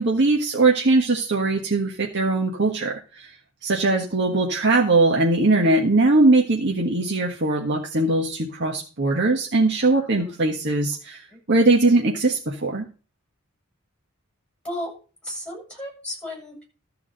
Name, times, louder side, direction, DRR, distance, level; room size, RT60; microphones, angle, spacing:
voice 1, 0.0-3.3 3.6-11.2 11.5-12.8, right 2 dB, 55° right, -1 dB, 1.5 m, -20 dB
voice 2, 9.8-10.5 11.3-11.4 14.6-14.9 15.2-16.6, left 1 dB, 5° left, -1 dB, 7.9 m, -35 dB
13.5 x 4.8 x 7.9 m, 0.36 s
head